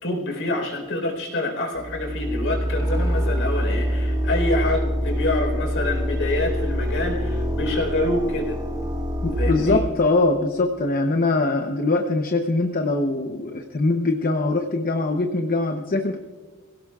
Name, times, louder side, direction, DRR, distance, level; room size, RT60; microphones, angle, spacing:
voice 1, 0.0-8.6 9.4-9.8, left 1 dB, 60° left, 1 dB, 4.2 m, -26 dB
sound 1, 1.8-9.8, equal, 20° right, 1.6 m, -25 dB
voice 2, 9.2-16.2, left 2 dB, 40° left, 4 dB, 0.8 m, -22 dB
24.0 x 17.0 x 2.4 m, 1.5 s
head